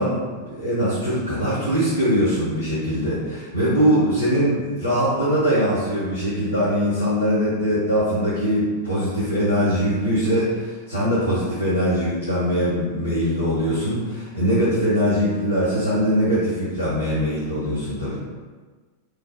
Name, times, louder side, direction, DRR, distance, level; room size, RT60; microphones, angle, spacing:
voice 1, 0.0-18.2, equal, 90° left, -11 dB, 1.1 m, -22 dB
3.1 x 2.1 x 2.9 m, 1.4 s
figure-of-eight pair, 90°, 0 cm